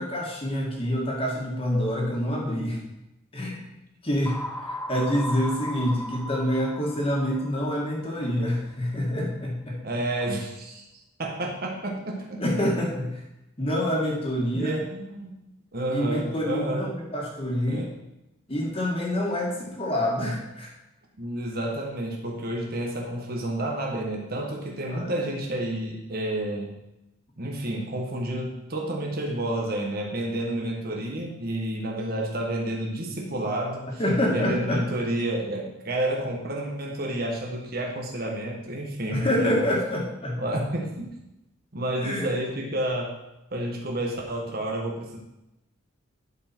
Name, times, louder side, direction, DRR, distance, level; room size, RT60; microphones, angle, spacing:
voice 1, 0.0-2.8 3.3-3.6 4.0-4.4 4.7-9.8 12.4-13.2 13.6-14.7 15.9-17.9 18.5-20.7 24.9-25.1 34.0-34.8 39.1-40.4 42.0-42.3, equal, 25° left, -2 dB, 1.8 m, -26 dB
sound 1, 4.3-8.1, left 1 dB, 10° left, 0.4 m, -36 dB
voice 2, 9.8-10.8 11.2-12.4 14.5-15.4 15.7-16.9 17.7-18.0 21.2-26.8 27.4-34.0 34.3-39.7 40.4-41.1 41.7-43.1 43.5-45.2, right 1 dB, 50° right, -1 dB, 1.4 m, -30 dB
11.5 x 4.8 x 4.4 m, 0.92 s
head